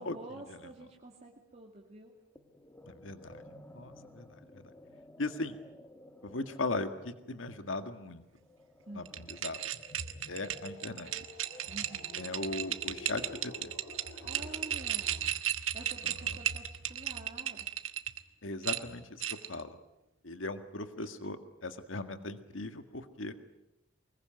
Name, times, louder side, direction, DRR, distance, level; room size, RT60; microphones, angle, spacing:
voice 1, 0.0-2.1 8.9-9.2 11.7-12.3 14.2-17.7, right 2 dB, 35° right, -1 dB, 2.7 m, -49 dB
sound 1, 2.3-13.7, left 1 dB, 15° left, 1.6 m, -55 dB
voice 2, 2.9-3.4 3.7-4.3 4.5-4.6 5.2-5.6 6.2-8.2 8.9-9.6 10.3-11.1 12.2-13.7 16.0-16.4 18.4-19.2 19.5-19.8 20.2-23.3, left 2 dB, 70° left, 8 dB, 1.8 m, -38 dB
sound 2, 9.1-18.2 18.6-19.6, right 10 dB, 75° right, 1.5 m, -35 dB
sound 3, 9.6-15.4, left 1 dB, 90° left, 5.7 m, -52 dB
24.5 x 21.5 x 9.2 m, 0.92 s
head